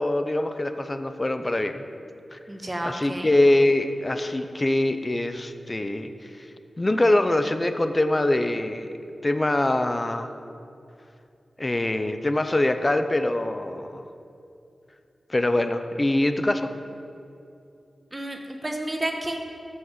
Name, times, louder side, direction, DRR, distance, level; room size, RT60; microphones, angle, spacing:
voice 1, 0.0-1.9 2.3-2.4 2.8-6.1 6.4-6.5 6.8-8.9 9.2-10.3 11.6-14.0 15.3-16.7, left 1 dB, 20° left, 8 dB, 0.7 m, -23 dB
voice 2, 2.5-3.3 18.1-19.4, right 1 dB, 20° right, 2 dB, 1.3 m, -31 dB
13.0 x 6.5 x 7.4 m, 2.6 s
wide cardioid pair, 120°, 0 cm